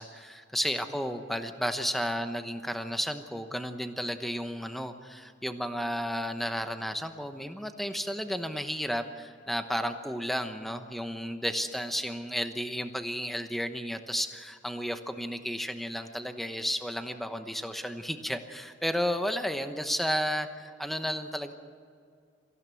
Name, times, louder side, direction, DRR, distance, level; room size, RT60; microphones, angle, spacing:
voice 1, 0.0-21.5, equal, ahead, 7 dB, 1.0 m, -33 dB
24.5 x 15.5 x 7.0 m, 2.2 s
head